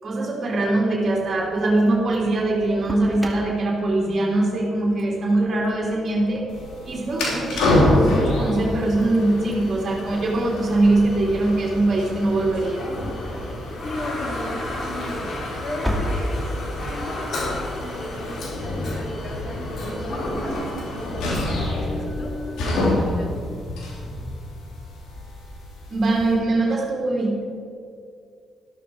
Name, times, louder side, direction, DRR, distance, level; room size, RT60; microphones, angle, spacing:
voice 1, 0.0-6.5 6.8-12.9 25.9-27.4, right 2 dB, 45° right, -4 dB, 3.1 m, -22 dB
Engine starting, 1.0-18.0, equal, 5° right, 2.7 m, -37 dB
elevator motor, 6.5-26.3, left 1 dB, 80° left, 3.3 m, -28 dB
Toilet flush, 12.6-21.7, left 1 dB, 60° left, 3.4 m, -33 dB
voice 2, 13.8-16.5 16.9-23.5, left 1 dB, 45° left, 0 dB, 3.5 m, -36 dB
13.5 x 12.0 x 4.8 m, 2.3 s
supercardioid pair, 55°, 0 cm